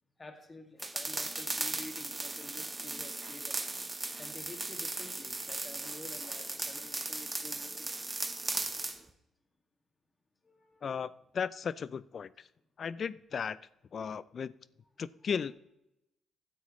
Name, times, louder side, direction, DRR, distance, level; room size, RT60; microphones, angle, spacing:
voice 1, 0.2-3.6 4.2-7.9 10.4-10.8, left 2 dB, 25° left, 2.2 m, -50 dB
sound 1, 0.8-9.0, right 2 dB, 20° right, 1.0 m, -37 dB
voice 2, 10.8-12.5 12.8-13.6 13.9-14.5 15.0-15.6, left 6 dB, 50° left, 0.4 m, -36 dB
16.0 x 9.8 x 3.2 m
cardioid pair, 90°, 0 cm